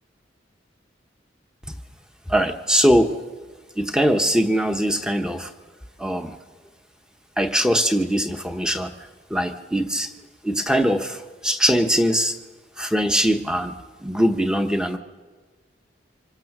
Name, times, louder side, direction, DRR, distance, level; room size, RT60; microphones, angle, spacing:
voice 1, 2.3-3.2 3.8-5.5 6.0-6.4 7.4-9.0 9.3-10.1 10.4-12.3 12.8-15.0, equal, 5° right, 6 dB, 1.0 m, -21 dB
29.0 x 25.5 x 6.1 m, 1.4 s
head